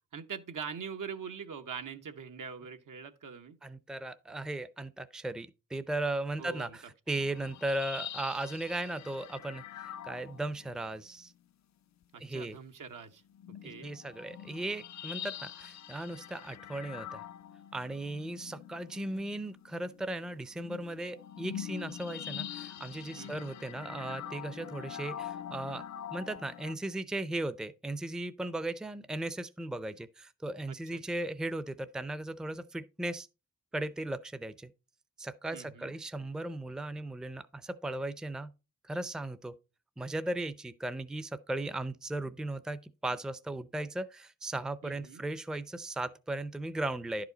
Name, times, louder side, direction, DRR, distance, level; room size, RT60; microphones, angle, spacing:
voice 1, 0.1-3.6 6.4-6.8 12.1-13.2 13.6-13.9 23.2-23.5 30.7-31.0 35.5-35.9 44.8-45.2, right 6 dB, 75° right, 1.0 m, -43 dB
voice 2, 3.6-11.3 12.2-12.6 13.8-17.3 17.7-25.8 26.1-33.3 33.7-34.7 35.2-38.5 38.8-39.5 40.0-47.2, right 2 dB, ahead, 0.5 m, -37 dB
sound 1, 7.1-11.0 13.3-26.8, left 10 dB, 60° left, 0.4 m, -44 dB
10.5 x 5.0 x 3.9 m
cardioid pair, 75°, 32 cm